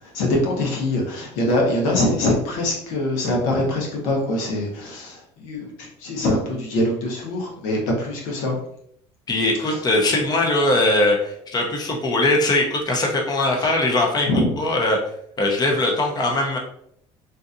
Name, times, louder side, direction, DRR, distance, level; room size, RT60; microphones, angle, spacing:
voice 1, 0.0-8.5 9.6-9.8 13.6-13.7 14.3-14.5, left 1 dB, 85° left, -1 dB, 1.1 m, -23 dB
voice 2, 9.3-14.3 14.6-15.0 15.4-16.6, left 2 dB, 30° left, 0 dB, 0.8 m, -20 dB
3.8 x 2.7 x 2.6 m, 0.69 s
supercardioid pair, 95°, 13 cm